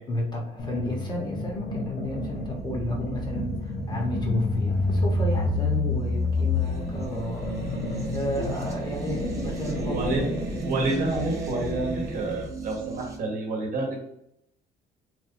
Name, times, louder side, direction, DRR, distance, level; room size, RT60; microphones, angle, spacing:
voice 1, 0.1-7.6 8.1-10.5, equal, 25° left, 0 dB, 0.9 m, -33 dB
sound 1, 0.6-11.1, left 3 dB, 65° left, 0.9 m, -29 dB
sound 2, 2.0-13.2, right 2 dB, 20° right, 0.7 m, -37 dB
sound 3, 6.6-12.5, right 2 dB, 85° right, 0.8 m, -36 dB
voice 2, 9.8-14.0, right 2 dB, 55° right, 0 dB, 1.0 m, -29 dB
3.1 x 2.6 x 2.5 m, 0.76 s
cardioid pair, 110°, 17 cm